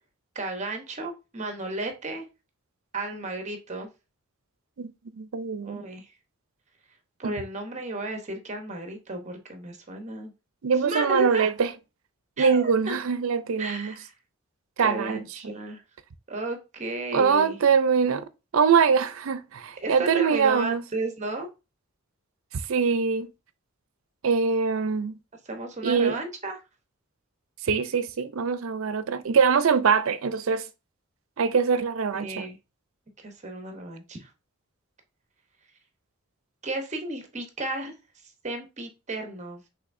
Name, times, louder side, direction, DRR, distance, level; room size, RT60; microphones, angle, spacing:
voice 1, 0.3-2.2 2.9-3.9 5.6-6.1 7.2-10.3 10.8-11.5 12.4-13.0 13.6-14.1 14.8-15.8 16.3-17.6 19.8-21.5 25.5-26.6 32.1-32.6 33.2-34.3 36.6-37.9 38.4-39.6, right 2 dB, 35° right, 0.9 m, -33 dB
voice 2, 4.8-5.9 7.2-7.3 10.6-11.7 12.4-13.9 14.8-15.2 17.1-18.2 18.5-20.8 22.7-23.3 24.2-25.1 25.8-26.2 27.6-30.6 31.4-32.4, right 6 dB, 70° right, 0.5 m, -23 dB
5.7 x 3.2 x 2.6 m
head